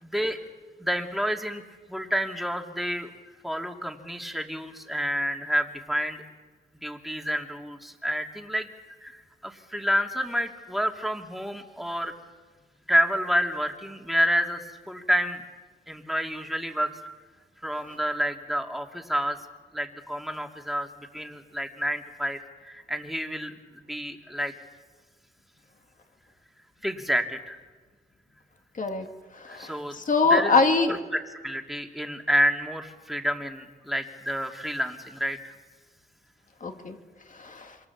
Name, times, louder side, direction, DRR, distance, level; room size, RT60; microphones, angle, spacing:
voice 1, 0.0-0.4 0.8-1.6 1.9-3.1 3.4-6.2 6.8-8.7 9.0-12.1 12.9-15.4 15.9-16.9 17.6-19.4 19.7-24.5 26.8-27.6 29.5-30.0 30.3-35.4, equal, ahead, 3 dB, 2.7 m, -29 dB
voice 2, 29.4-31.0 36.6-37.0 37.4-37.7, left 4 dB, 45° left, 5 dB, 2.6 m, -23 dB
27.0 x 25.5 x 7.3 m, 1.3 s
wide cardioid pair, 100°, 18 cm